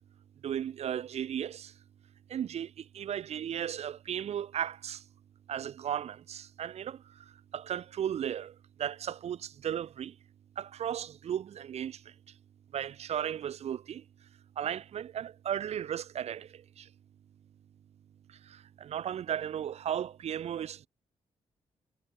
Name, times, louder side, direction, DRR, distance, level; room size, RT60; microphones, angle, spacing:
voice 1, 0.4-1.8 2.3-5.1 5.5-10.2 10.6-12.4 12.7-14.3 14.5-16.9 18.3-20.9, right 9 dB, 70° right, 2.9 m, -36 dB
wide cardioid pair, 155°, 11 cm